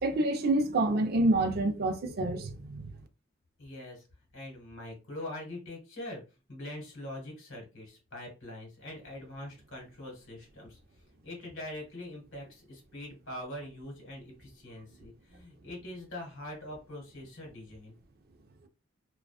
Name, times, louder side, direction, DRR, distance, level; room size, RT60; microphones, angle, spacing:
voice 1, 0.0-2.9, right 2 dB, 50° right, 0.4 m, -27 dB
voice 2, 3.6-4.0 4.3-6.2 6.5-10.8 11.2-18.0, left 1 dB, 65° left, 1.2 m, -43 dB
2.4 x 2.3 x 2.3 m
head